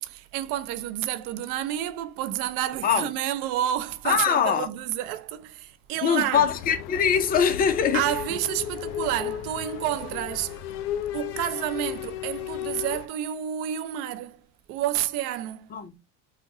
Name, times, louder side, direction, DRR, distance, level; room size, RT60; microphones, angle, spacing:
voice 1, 0.0-6.4 7.9-10.5 11.1-14.4 14.7-15.7, right 12 dB, 70° right, 0.6 m, -29 dB
voice 2, 4.0-4.7 6.0-8.0 15.7-15.9, left 7 dB, 20° left, 0.4 m, -22 dB
sound 1, 6.3-13.1, left 11 dB, 85° left, 0.5 m, -34 dB
3.6 x 2.2 x 2.6 m
supercardioid pair, 110°, 45 cm